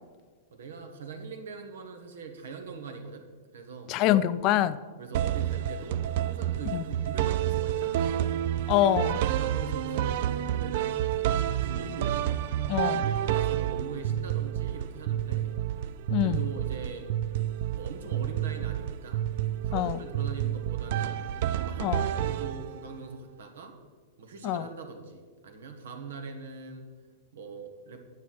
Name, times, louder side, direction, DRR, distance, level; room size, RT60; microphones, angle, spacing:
voice 1, 0.5-3.3 3.5-4.0 5.0-8.3 9.3-12.2 13.0-15.5 16.2-17.1 17.7-19.2 19.6-21.2 21.6-23.7 24.2-26.9 27.3-28.0, right 4 dB, 80° right, 5 dB, 1.5 m, -41 dB
voice 2, 3.9-4.8 6.7-6.8 8.7-9.2 12.7-13.1 16.1-16.4 19.7-20.0 21.8-22.1 24.4-24.7, left 12 dB, 40° left, 15 dB, 0.4 m, -25 dB
sound 1, 5.1-23.0, right 11 dB, 60° right, 0.4 m, -29 dB
9.5 x 5.8 x 6.0 m, 1.5 s
hypercardioid pair, 130°, 0 cm